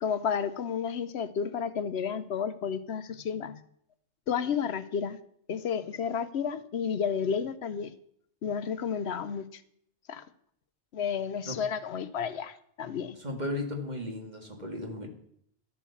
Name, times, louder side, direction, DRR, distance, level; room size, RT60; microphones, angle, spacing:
voice 1, 0.0-3.6 4.3-5.2 5.5-7.9 8.4-9.6 10.1-10.3 10.9-13.2, left 7 dB, 70° left, 13 dB, 0.9 m, -31 dB
voice 2, 13.2-15.1, left 1 dB, 40° right, 3 dB, 2.3 m, -35 dB
12.0 x 8.6 x 7.1 m, 0.69 s
omnidirectional pair, 1.2 m